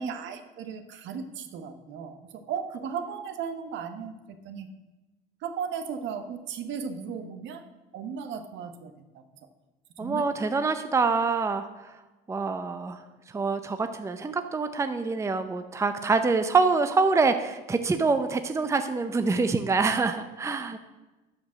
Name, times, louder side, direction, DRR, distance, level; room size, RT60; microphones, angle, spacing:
voice 1, 0.0-4.7 5.4-7.6 7.9-9.2 10.0-10.3, right 7 dB, 60° right, 8 dB, 1.2 m, -36 dB
voice 2, 10.0-11.7 12.3-13.0 13.3-20.8, right 4 dB, 15° right, 9 dB, 0.6 m, -25 dB
12.0 x 5.2 x 6.2 m, 1.1 s
supercardioid pair, 105°, 21 cm